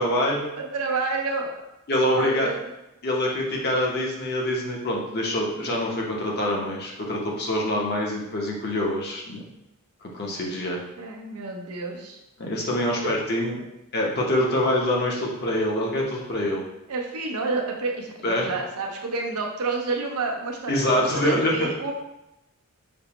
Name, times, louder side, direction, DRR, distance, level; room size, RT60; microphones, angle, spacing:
voice 1, 0.0-0.5 1.9-2.5 3.0-9.4 10.1-10.8 12.4-13.6 13.9-16.6 18.2-18.5 20.7-21.6, left 1 dB, 45° left, -1 dB, 0.7 m, -25 dB
voice 2, 0.6-1.6 2.1-2.6 11.0-12.2 16.9-21.9, right 3 dB, 85° right, 1 dB, 0.6 m, -29 dB
5.3 x 2.1 x 2.9 m, 0.92 s
head